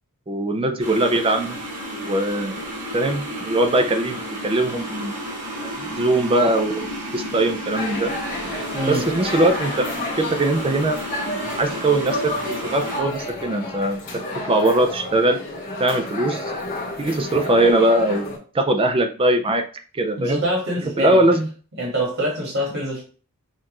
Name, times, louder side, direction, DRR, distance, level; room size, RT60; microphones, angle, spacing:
voice 1, 0.3-1.6 1.9-2.6 2.9-5.1 5.6-8.1 8.9-14.0 14.5-15.4 15.8-16.4 17.0-18.3 18.5-19.6 19.9-20.4 21.0-21.5, right 1 dB, 25° right, 6 dB, 0.4 m, -21 dB
sound 1, 0.8-13.0, equal, 85° right, 2.0 m, -32 dB
sound 2, 7.7-18.4, left 2 dB, 40° left, 1.5 m, -31 dB
voice 2, 8.7-9.1 20.2-21.4 21.8-23.0, equal, 60° right, -3 dB, 1.7 m, -25 dB
6.4 x 2.5 x 2.9 m, 0.38 s
head